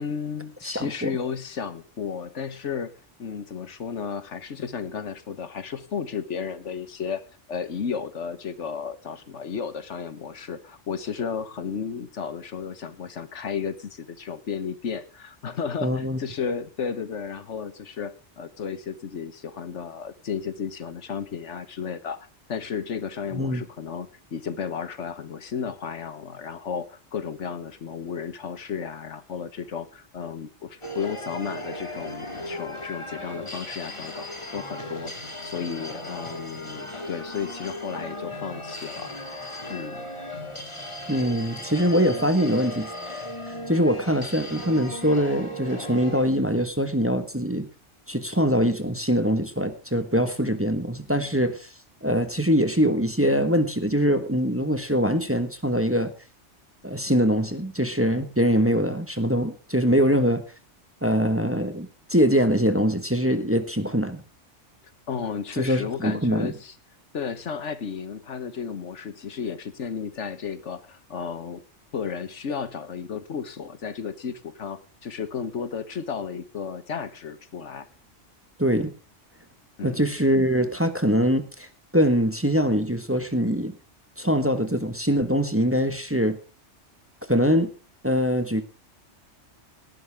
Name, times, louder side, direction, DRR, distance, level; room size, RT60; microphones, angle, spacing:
voice 1, 0.0-2.9 3.2-7.2 7.5-35.1 35.4-39.1 39.7-40.1 65.1-66.7 67.1-71.6 71.9-77.9 79.8-80.1, left 6 dB, 75° left, 13 dB, 1.5 m, -33 dB
voice 2, 0.6-1.1 15.8-16.2 23.3-23.6 41.1-43.2 43.7-47.7 48.1-51.7 52.0-56.1 56.8-60.4 61.0-64.2 65.6-66.5 78.6-78.9 79.8-81.7 81.9-83.7 84.2-86.4 87.3-87.7 88.0-88.6, equal, 10° right, 9 dB, 1.3 m, -23 dB
sound 1, 30.8-46.3, left 1 dB, 25° left, 2.0 m, -36 dB
18.5 x 11.5 x 3.5 m, 0.35 s
omnidirectional pair, 1.2 m